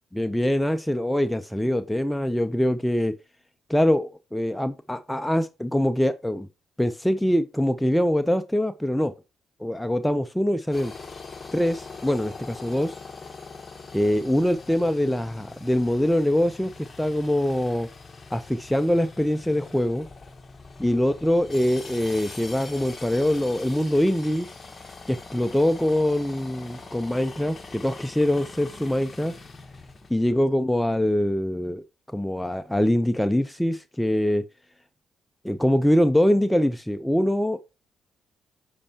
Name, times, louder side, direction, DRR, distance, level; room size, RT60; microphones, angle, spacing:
voice 1, 0.2-3.1 3.7-6.5 6.8-9.1 9.6-10.9 11.5-13.0 13.9-16.7 17.0-17.9 18.3-20.1 20.8-24.5 25.1-29.3 30.1-31.8 32.1-34.4 35.4-37.6, left 1 dB, 5° left, 0.4 m, -23 dB
sound 1, 10.7-30.5, left 4 dB, 30° left, 1.2 m, -43 dB
8.6 x 5.4 x 2.8 m
cardioid pair, 90°, 0 cm